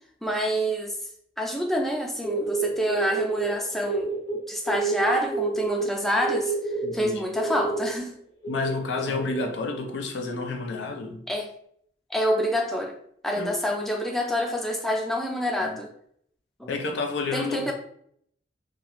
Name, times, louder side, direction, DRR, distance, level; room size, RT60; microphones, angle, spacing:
voice 1, 0.2-1.0 1.4-4.1 4.5-6.5 6.9-8.1 9.1-9.2 11.3-11.5 12.1-13.0 13.2-15.9 16.6-16.8 17.3-17.7, equal, ahead, 1 dB, 0.3 m, -27 dB
sound 1, 2.2-4.4 4.7-5.8 6.2-7.9 8.4-9.4, right 4 dB, 70° left, 1.2 m, -29 dB
voice 2, 6.8-7.2 8.5-11.2 13.4-13.5 15.6-15.8 16.7-17.7, left 3 dB, 90° left, 4 dB, 0.5 m, -30 dB
2.4 x 2.4 x 2.9 m, 0.65 s
head